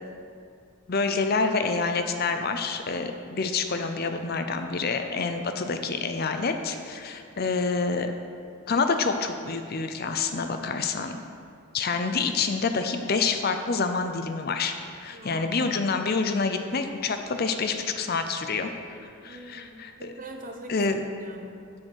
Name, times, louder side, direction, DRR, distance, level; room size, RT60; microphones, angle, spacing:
voice 1, 0.9-8.1 8.7-11.1 11.7-18.7 19.0-19.9 20.7-21.0, left 4 dB, 45° left, 7 dB, 0.5 m, -27 dB
voice 2, 15.1-15.6 19.2-20.8 21.2-21.6, right 2 dB, 40° right, 3 dB, 0.9 m, -43 dB
7.6 x 7.4 x 6.3 m, 2.5 s
head